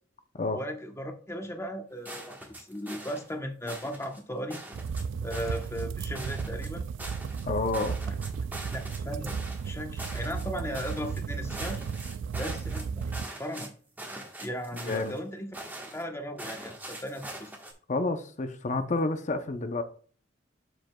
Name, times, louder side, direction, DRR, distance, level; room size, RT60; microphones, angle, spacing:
voice 1, 0.5-4.6 5.2-6.8 8.7-9.3 9.6-11.9 12.4-13.7 14.4-15.6 15.9-17.5, equal, 15° left, 1.0 m, -37 dB
sound 1, 2.1-3.3 3.7-4.2 4.5-5.0 5.3-5.8 6.1-7.4 7.7-9.0 9.3-9.7 10.0-10.5 10.7-11.2 11.5-13.7 14.0-15.2 15.5-16.0 16.4-17.7, right 1 dB, 10° right, 1.3 m, -42 dB
sound 2, 4.7-13.2, right 6 dB, 85° right, 0.3 m, -34 dB
voice 2, 7.4-8.0 14.9-15.1 17.9-19.8, left 2 dB, 40° left, 0.7 m, -29 dB
11.5 x 5.1 x 2.3 m
head